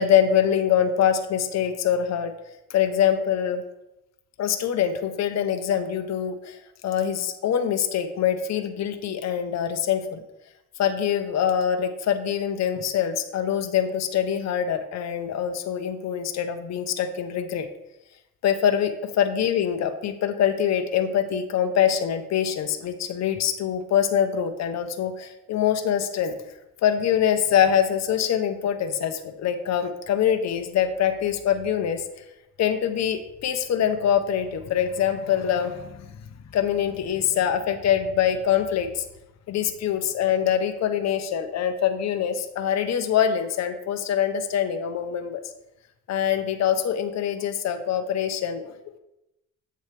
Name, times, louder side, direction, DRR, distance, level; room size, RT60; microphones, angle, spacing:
voice 1, 0.0-2.3 2.7-3.6 4.4-6.6 6.8-10.2 10.8-17.7 18.4-26.3 26.8-32.0 32.6-36.1 36.5-39.0 39.5-45.4 46.1-49.0, left 9 dB, 60° left, 7 dB, 0.8 m, -24 dB
7.8 x 6.5 x 3.3 m, 0.88 s
cardioid pair, 90°, 30 cm